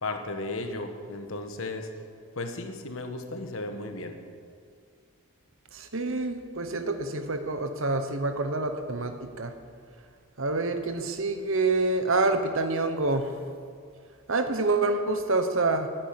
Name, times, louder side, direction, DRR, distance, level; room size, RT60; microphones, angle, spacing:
voice 1, 0.0-1.9 2.4-4.2, left 2 dB, 65° left, 6 dB, 1.3 m, -35 dB
voice 2, 5.7-9.5 10.4-13.3 14.3-15.9, right 3 dB, 60° right, 8 dB, 1.1 m, -27 dB
11.0 x 9.1 x 9.7 m, 2.2 s
head